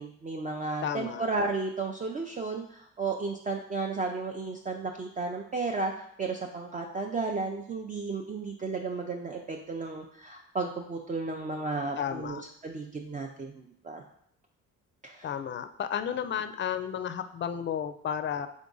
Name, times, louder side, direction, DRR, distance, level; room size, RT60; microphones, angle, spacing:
voice 1, 0.0-5.9 6.2-14.0 15.0-15.3, right 3 dB, 25° right, 2 dB, 0.4 m, -33 dB
voice 2, 0.8-1.3 12.0-12.4 15.2-18.5, left 8 dB, 40° left, 10 dB, 0.4 m, -32 dB
3.6 x 3.6 x 3.8 m, 0.69 s
cardioid pair, 90°, 30 cm